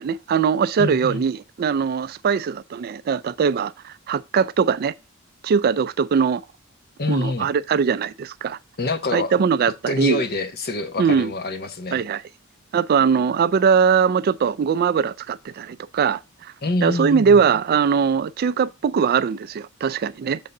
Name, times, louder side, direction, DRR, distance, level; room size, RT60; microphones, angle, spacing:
voice 1, 0.0-4.9 5.4-6.4 7.1-8.6 9.1-10.2 11.0-11.3 11.9-12.2 12.7-16.5 16.8-20.4, right 6 dB, 45° right, 0.3 m, -21 dB
voice 2, 0.8-1.2 7.0-7.5 8.8-9.3 9.9-12.0 16.6-17.4, left 2 dB, 45° left, 0.9 m, -26 dB
6.9 x 3.7 x 5.3 m
head